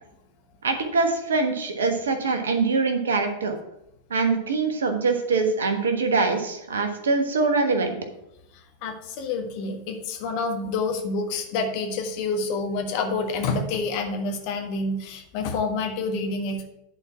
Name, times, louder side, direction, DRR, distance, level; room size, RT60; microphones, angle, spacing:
voice 1, 0.6-3.6 4.1-8.0, right 4 dB, 65° right, 6 dB, 1.3 m, -23 dB
voice 2, 8.5-16.7, left 3 dB, 45° left, 3 dB, 1.5 m, -28 dB
10.5 x 4.4 x 5.8 m, 0.85 s
figure-of-eight pair, 90°, 0 cm